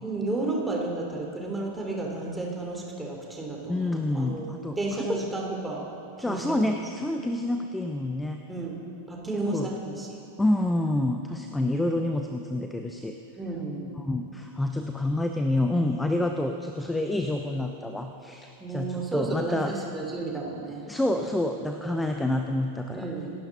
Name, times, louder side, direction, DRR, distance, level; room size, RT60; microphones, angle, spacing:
voice 1, 0.0-4.4 4.8-5.8 6.2-6.4 8.5-8.8 9.1-10.1 13.4-14.1 18.6-20.8 21.8-21.9 22.9-23.3, right 2 dB, 10° right, -1 dB, 3.4 m, -32 dB
voice 2, 3.7-5.2 6.2-8.4 9.3-9.7 10.4-13.1 14.0-19.7 20.9-23.1, left 1 dB, 5° left, 5 dB, 0.8 m, -28 dB
27.0 x 12.0 x 4.1 m, 2.7 s
figure-of-eight pair, 90°, 0 cm